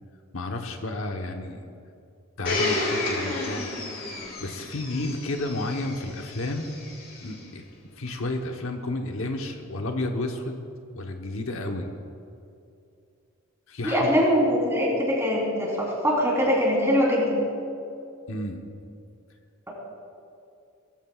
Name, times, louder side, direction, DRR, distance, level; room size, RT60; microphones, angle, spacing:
voice 1, 0.3-1.6 2.4-3.7 4.4-6.7 7.2-7.6 7.9-10.6 10.9-11.9 13.7-14.1 18.3-18.6, left 2 dB, 75° left, 3 dB, 1.1 m, -31 dB
Domestic sounds home sounds, 2.5-7.3 8.1-8.2, left 2 dB, 45° left, 2.3 m, -31 dB
voice 2, 13.8-17.4, equal, 15° right, -4 dB, 3.6 m, -22 dB
20.5 x 14.5 x 2.4 m, 2.6 s
head